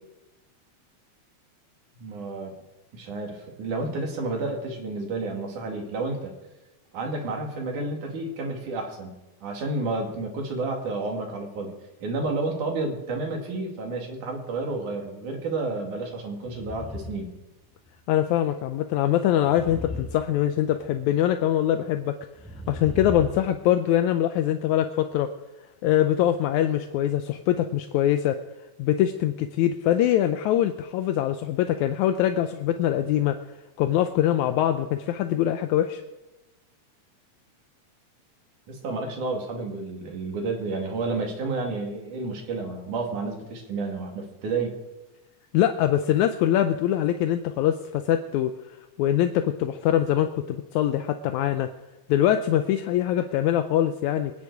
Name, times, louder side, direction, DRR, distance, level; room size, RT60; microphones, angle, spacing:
voice 1, 2.0-2.5 2.9-6.3 6.9-11.7 12.0-17.3 38.7-44.7, right 3 dB, 85° right, 2 dB, 3.8 m, -31 dB
sound 1, 16.4-17.3 17.6-17.9 19.3-20.9 22.3-23.6, left 2 dB, ahead, 2.7 m, -37 dB
voice 2, 18.1-22.2 22.7-25.3 25.8-28.4 28.8-33.4 33.8-36.0 45.5-48.5 49.0-51.7 52.1-54.3, left 11 dB, 80° left, 8 dB, 2.0 m, -23 dB
24.0 x 9.7 x 4.7 m, 1.0 s
omnidirectional pair, 3.4 m